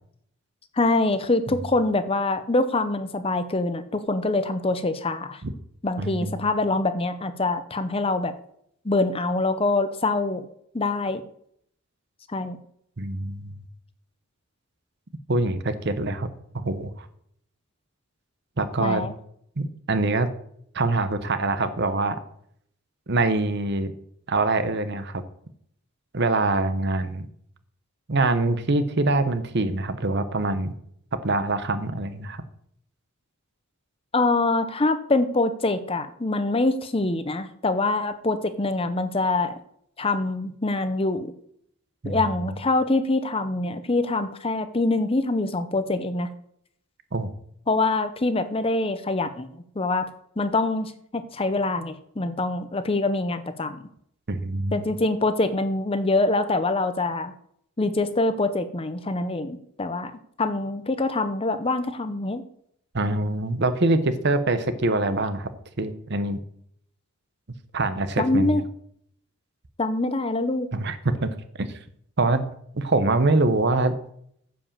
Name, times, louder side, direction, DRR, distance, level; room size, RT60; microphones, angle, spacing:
voice 1, 0.8-5.4 5.8-8.3 8.8-10.4 10.7-11.2 12.3-12.6 18.8-19.1 34.1-39.6 40.0-41.3 42.0-46.3 47.7-49.5 49.8-50.1 50.4-53.8 54.7-57.3 57.8-60.1 60.4-62.4 68.2-68.6 69.8-70.7, left 2 dB, 25° left, 11 dB, 0.7 m, -24 dB
voice 2, 6.0-6.5 13.0-13.6 15.3-17.1 18.6-19.1 19.6-20.3 20.7-22.2 23.1-23.9 24.3-25.2 26.1-27.3 28.1-30.7 31.1-32.4 42.0-42.2 47.1-47.3 54.3-54.8 62.9-65.5 65.8-66.4 67.7-68.6 70.7-71.3 71.6-71.7 72.2-72.5 72.7-73.9, right 2 dB, 50° right, 11 dB, 0.9 m, -24 dB
9.9 x 5.2 x 7.2 m, 0.68 s
head